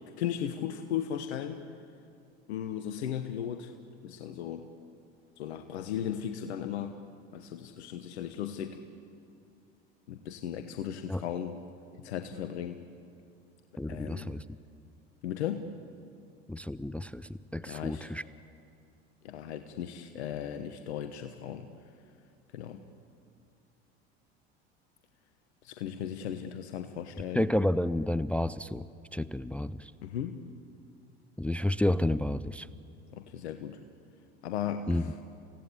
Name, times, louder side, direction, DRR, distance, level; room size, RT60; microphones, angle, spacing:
voice 1, 0.2-1.6 2.5-3.7 4.0-4.6 5.4-7.0 7.3-8.8 10.1-11.6 12.0-12.8 13.9-14.3 15.2-15.7 17.7-18.1 19.2-21.7 22.5-22.8 25.6-27.5 30.0-30.4 33.1-33.8 34.4-35.1, left 9 dB, 80° left, 8 dB, 1.2 m, -36 dB
voice 2, 13.8-14.4 16.5-18.2 27.3-28.9 29.1-29.9 31.4-32.7 34.9-35.0, left 1 dB, 5° left, 16 dB, 0.5 m, -30 dB
28.0 x 17.0 x 8.6 m, 2.4 s
hypercardioid pair, 80°, 33 cm